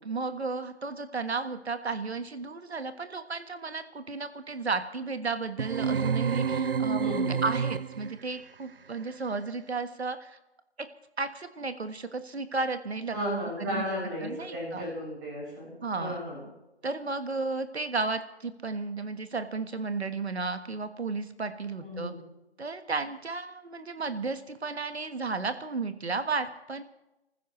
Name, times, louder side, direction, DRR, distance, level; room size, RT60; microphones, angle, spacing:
voice 1, 0.0-7.0 7.4-10.4 10.8-10.9 11.2-13.2 13.4-13.9 14.2-14.9 15.8-16.2 16.8-22.1 22.6-26.8, right 4 dB, 75° right, 10 dB, 1.5 m, -33 dB
sound 1, 5.6-8.2, right 6 dB, 55° right, 0.6 m, -28 dB
voice 2, 7.0-7.4 13.1-16.4 21.8-22.2, equal, 20° right, -5 dB, 6.9 m, -34 dB
28.0 x 15.0 x 3.2 m, 0.93 s
figure-of-eight pair, 165°, 33 cm